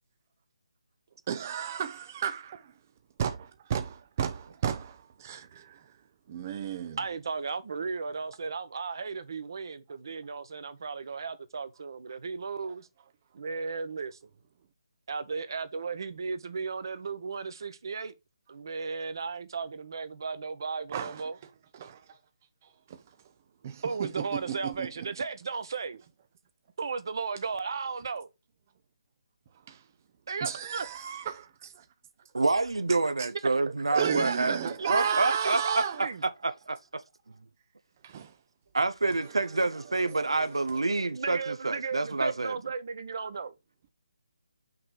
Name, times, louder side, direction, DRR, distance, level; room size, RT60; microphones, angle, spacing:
voice 1, 1.3-2.6 3.2-3.4 3.7-7.0 20.9-22.2 22.6-23.3 23.6-25.1 29.5-29.9 30.4-31.7 33.2-33.3 33.9-36.1 38.0-38.4 39.2-40.8, right 8 dB, 30° right, 0.5 m, -34 dB
voice 2, 7.0-12.9 13.3-14.2 15.1-18.1 18.5-21.3 23.8-26.0 26.8-28.3 30.3-30.9 33.7-36.2 41.1-43.5, right 5 dB, 55° right, 1.0 m, -35 dB
voice 3, 32.4-34.5 34.9-35.8 36.4-36.8 38.7-42.6, right 3 dB, 85° right, 0.7 m, -27 dB
5.8 x 3.3 x 5.6 m
figure-of-eight pair, 155°, 3 cm